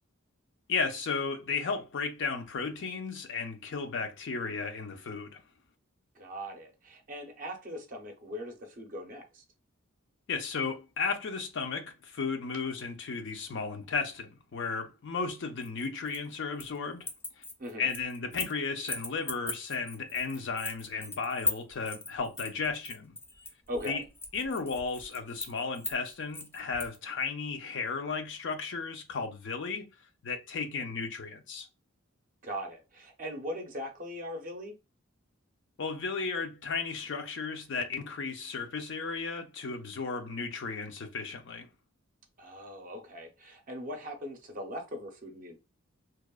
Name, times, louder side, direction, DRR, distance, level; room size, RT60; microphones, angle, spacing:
voice 1, 0.7-5.4 10.3-17.1 17.4-17.5 17.8-23.2 23.9-24.0 24.3-29.9 30.2-31.7 35.8-41.7, left 4 dB, 60° left, 0.5 m, -34 dB
voice 2, 6.2-9.4 17.6-17.9 23.7-24.0 32.4-34.7 42.4-45.6, equal, 40° right, 0.5 m, -40 dB
sound 1, 15.6-16.8 17.0-18.6 18.9-27.0, left 2 dB, 10° left, 0.4 m, -38 dB
2.9 x 2.0 x 2.2 m
head